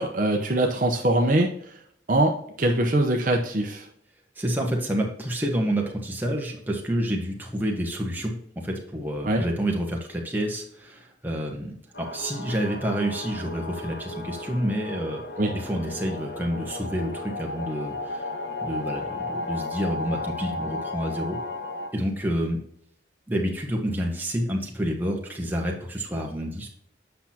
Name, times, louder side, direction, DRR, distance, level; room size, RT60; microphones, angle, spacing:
voice 1, 0.0-1.5 2.1-3.9 9.2-9.4 15.4-15.5, right 1 dB, 45° right, 2 dB, 0.8 m, -22 dB
voice 2, 4.4-15.2 15.5-18.3 18.6-21.4 21.9-22.6 23.3-26.7, equal, 10° right, 0 dB, 1.2 m, -28 dB
sound 1, 11.9-21.9, left 2 dB, 70° left, 1.2 m, -34 dB
8.3 x 5.8 x 2.8 m, 0.68 s
head